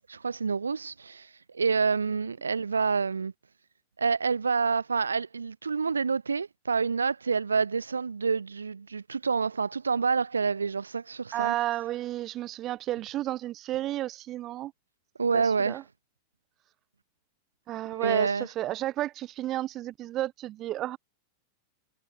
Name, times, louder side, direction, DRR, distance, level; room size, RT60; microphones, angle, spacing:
voice 1, 0.1-3.3 4.0-11.5 15.2-15.8 17.9-18.5, right 5 dB, 75° right, 0.5 m, -28 dB
voice 2, 11.3-14.7 15.3-15.8 17.7-21.0, right 14 dB, 35° right, 1.0 m, -32 dB
figure-of-eight pair, 90°, 0 cm